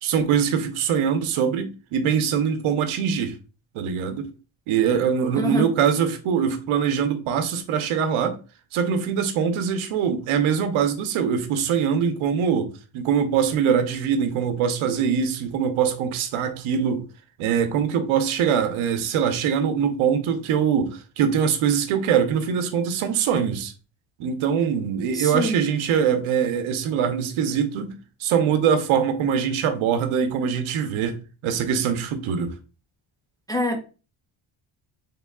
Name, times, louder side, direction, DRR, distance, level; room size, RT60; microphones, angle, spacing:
voice 1, 0.0-3.4 3.7-4.3 4.7-8.4 8.7-17.1 17.4-23.7 24.2-27.9 28.2-32.6, right 7 dB, 75° right, 0.8 m, -23 dB
voice 2, 5.3-5.7 25.1-25.5 33.5-33.8, equal, 10° left, 0.3 m, -24 dB
3.5 x 3.5 x 2.3 m
cardioid pair, 120°, 49 cm